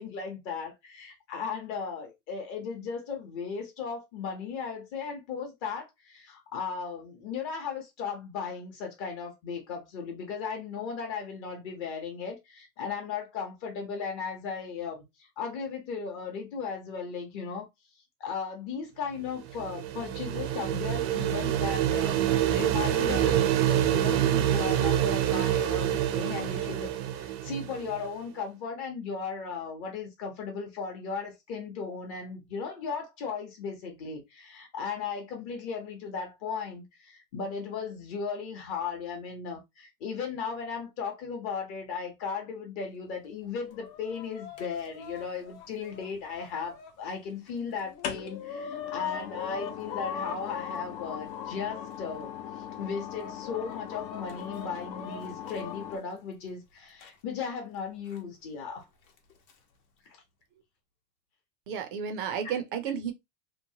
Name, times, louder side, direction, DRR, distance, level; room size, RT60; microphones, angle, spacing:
voice 1, 0.0-17.7 18.2-52.3 52.8-58.9, left 5 dB, 35° left, 0.8 m, -36 dB
sound 1, 19.3-28.0, right 11 dB, 90° right, 0.6 m, -26 dB
Chicken rooster, 43.4-46.9 47.5-47.6 47.8-51.9 52.5-55.8 57.0-57.1 58.1-58.2 59.2-59.5, left 6 dB, 90° left, 1.0 m, -41 dB
sound 2, 45.6-46.4 47.8-56.0, left 9 dB, 60° left, 0.8 m, -41 dB
voice 2, 61.7-63.1, right 7 dB, 35° right, 0.4 m, -32 dB
3.0 x 2.1 x 2.7 m
supercardioid pair, 145°, 50 cm